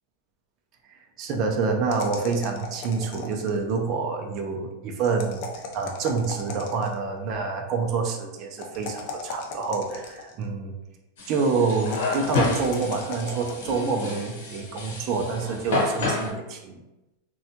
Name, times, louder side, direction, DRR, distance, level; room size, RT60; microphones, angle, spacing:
voice 1, 1.2-5.5 5.7-10.7 11.3-16.8, right 4 dB, 40° right, 2 dB, 0.4 m, -27 dB
sound 1, 1.9-3.7 5.1-7.0 8.6-10.4 11.7-13.7, left 4 dB, 55° left, 0.4 m, -38 dB
sound 2, 11.2-16.3, left 3 dB, 80° left, 0.8 m, -30 dB
2.6 x 2.1 x 2.7 m, 1.0 s
supercardioid pair, 145°, 0 cm